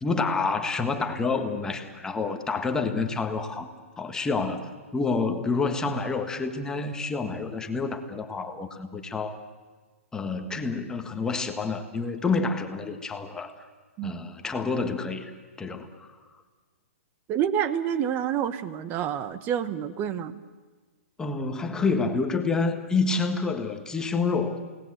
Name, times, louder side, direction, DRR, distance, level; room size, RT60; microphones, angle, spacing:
voice 1, 0.0-3.7 4.0-4.6 4.9-9.4 10.1-13.5 14.0-15.3 15.6-16.1 21.2-24.6, left 4 dB, 10° left, 6 dB, 1.5 m, -28 dB
voice 2, 17.3-20.4, right 9 dB, 25° right, 14 dB, 1.1 m, -28 dB
29.5 x 18.5 x 8.0 m, 1.4 s
hypercardioid pair, 145°, 8 cm